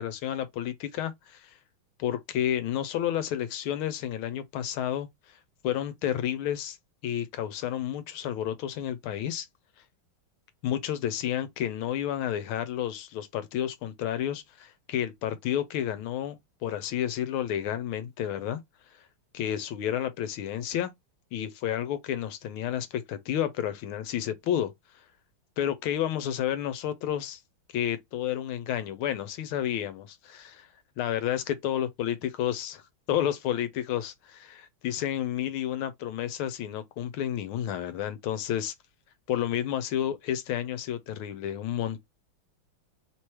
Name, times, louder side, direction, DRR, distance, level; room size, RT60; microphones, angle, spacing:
voice 1, 0.0-1.6 2.0-5.4 5.6-6.8 7.0-9.5 10.6-18.6 19.3-20.9 21.3-25.0 25.6-27.4 27.7-30.7 31.0-32.8 33.1-38.7 39.3-42.0, left 10 dB, 80° left, 1.4 m, -31 dB
3.4 x 3.0 x 4.5 m
omnidirectional pair, 2.4 m